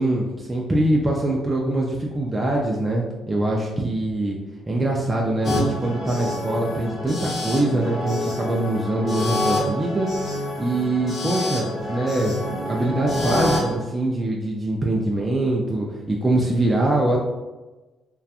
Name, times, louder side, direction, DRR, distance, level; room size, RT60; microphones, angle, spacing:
voice 1, 0.0-4.4 4.7-10.1 10.6-17.2, right 1 dB, 20° right, -2 dB, 0.4 m, -23 dB
sound 1, 5.4-13.8, left 1 dB, 50° left, 0.8 m, -27 dB
2.7 x 2.2 x 2.4 m, 1.2 s
cardioid pair, 90°, 0 cm